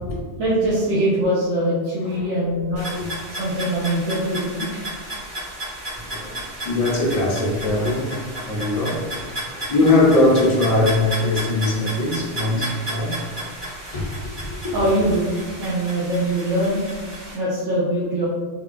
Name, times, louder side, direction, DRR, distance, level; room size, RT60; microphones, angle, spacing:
voice 1, 0.4-2.9 3.4-4.7 14.7-15.3 15.6-16.8 17.3-18.3, right 1 dB, 80° right, -8 dB, 1.0 m, -22 dB
sound 1, 2.8-17.4, right 1 dB, 65° right, 1.4 m, -33 dB
voice 2, 6.0-8.1 8.5-9.0 9.3-13.5 13.9-14.7, left 2 dB, 45° left, -3 dB, 0.5 m, -21 dB
3.6 x 2.2 x 2.4 m, 1.5 s
omnidirectional pair, 1.2 m